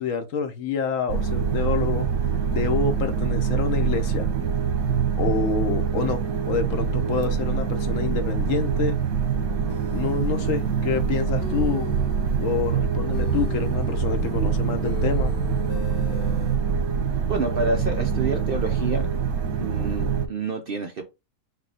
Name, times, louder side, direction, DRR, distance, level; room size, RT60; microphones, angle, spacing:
voice 1, 0.0-2.1 2.5-4.3 5.2-9.0 9.9-11.9 12.4-15.3, left 6 dB, 65° left, 1.0 m, -27 dB
sound 1, 1.1-20.3, right 6 dB, 85° right, 1.4 m, -25 dB
sound 2, 9.7-16.5, left 5 dB, 40° left, 0.9 m, -37 dB
voice 2, 17.3-19.1 19.6-21.0, right 3 dB, 55° right, 0.7 m, -28 dB
4.8 x 2.2 x 4.7 m
omnidirectional pair, 1.5 m